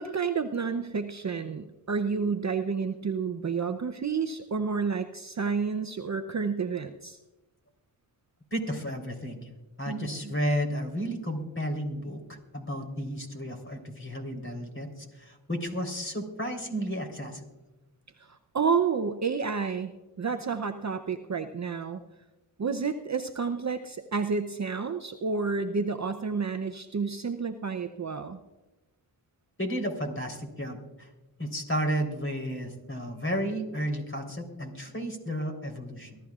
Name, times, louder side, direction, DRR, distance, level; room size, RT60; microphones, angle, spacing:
voice 1, 0.0-7.2 9.9-10.3 18.2-19.9 20.2-22.0 22.6-28.4, right 5 dB, 35° right, 8 dB, 0.7 m, -30 dB
voice 2, 8.5-9.4 9.8-17.4 29.6-31.1 31.4-36.2, equal, 25° left, 3 dB, 3.8 m, -32 dB
23.5 x 13.0 x 2.4 m, 1.1 s
cardioid pair, 45°, 47 cm